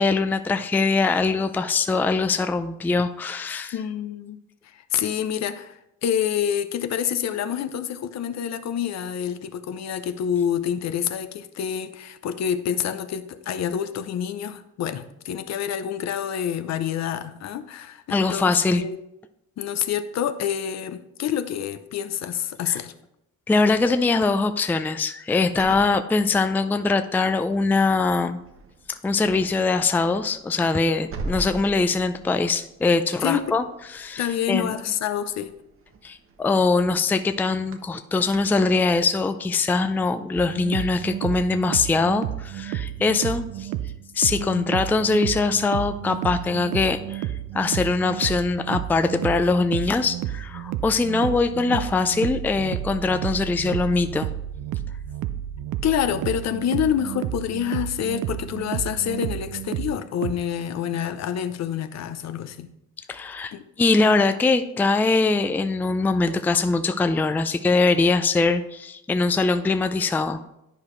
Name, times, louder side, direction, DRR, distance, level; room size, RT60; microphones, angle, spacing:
voice 1, 0.0-3.7 18.1-18.8 22.7-22.8 23.5-28.4 28.9-33.6 33.9-34.7 36.0-43.7 44.2-54.3 63.1-70.4, left 3 dB, 5° left, 9 dB, 0.3 m, -22 dB
voice 2, 3.7-4.4 4.7-19.0 19.6-22.9 33.2-33.5 34.2-35.5 44.4-44.7 55.8-62.7 63.5-63.6, left 9 dB, 60° left, 10 dB, 0.6 m, -27 dB
sound 1, 25.5-27.0 27.5-27.8 28.1-38.4, right 2 dB, 45° right, 0.9 m, -42 dB
sound 2, 40.4-60.3, right 12 dB, 80° right, 0.5 m, -31 dB
10.5 x 4.8 x 3.2 m, 0.84 s
cardioid pair, 90°, 30 cm